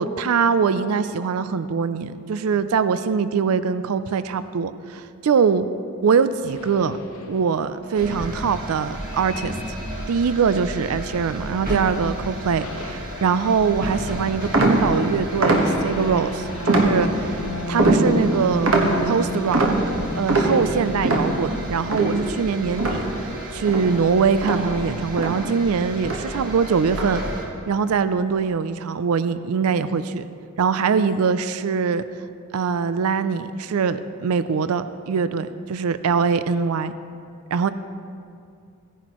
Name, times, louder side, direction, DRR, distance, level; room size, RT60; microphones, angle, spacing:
voice 1, 0.0-5.7 6.0-7.0 7.3-9.5 10.1-17.4 17.7-18.7 19.0-19.7 20.1-23.1 23.5-27.2 27.7-30.2 30.6-32.0 32.5-36.9 37.5-37.7, right 6 dB, 75° right, 13 dB, 0.4 m, -22 dB
sound 1, 6.4-7.7 9.0-11.5 11.8-12.2 12.6-22.8, left 1 dB, 75° left, 0.8 m, -35 dB
sound 2, 7.9-27.4, equal, 40° right, 1.8 m, -33 dB
sound 3, 14.5-16.1 16.7-17.4 17.8-23.4 23.7-25.7 26.0-26.4 26.9-27.4, right 2 dB, 60° right, 1.3 m, -23 dB
16.5 x 10.0 x 3.0 m, 2.4 s
head